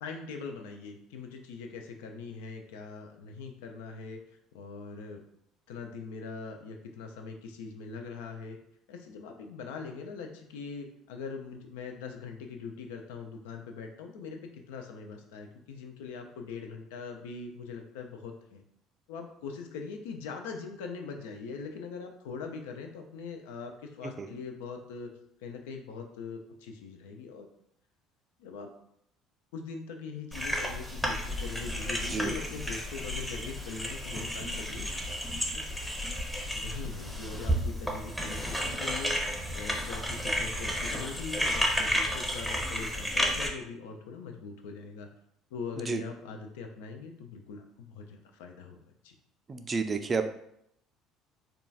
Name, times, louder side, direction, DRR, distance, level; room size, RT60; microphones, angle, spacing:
voice 1, 0.0-4.2 4.5-5.2 5.7-8.6 8.9-18.6 19.1-25.1 25.4-27.5 28.4-28.7 29.5-34.9 35.3-35.6 36.5-45.1 45.5-48.8 49.0-49.1, left 5 dB, 75° left, 4 dB, 0.4 m, -42 dB
sound 1, 30.3-43.5, equal, 5° left, 0.7 m, -32 dB
voice 2, 49.5-50.3, right 4 dB, 35° right, 7 dB, 0.3 m, -30 dB
3.8 x 2.3 x 2.3 m, 0.74 s
hypercardioid pair, 60°, 0 cm